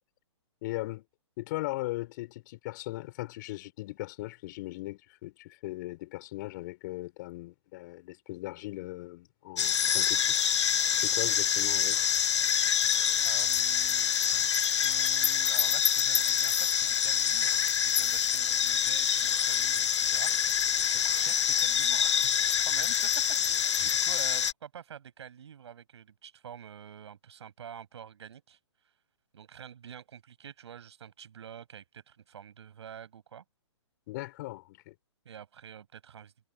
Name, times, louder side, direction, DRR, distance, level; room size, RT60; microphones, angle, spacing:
voice 1, 0.6-1.0 1.4-10.3 10.9-12.0 23.8-23.9 34.1-34.9, left 19 dB, 40° left, 6.6 m, -38 dB
sound 1, 9.6-24.5, left 8 dB, 70° left, 0.7 m, -26 dB
voice 2, 13.2-14.1 14.5-22.4 22.7-23.1 23.5-23.7 24.0-28.6 29.3-33.4 35.3-36.3, right 8 dB, 65° right, 7.5 m, -47 dB
hypercardioid pair, 140°, 15 cm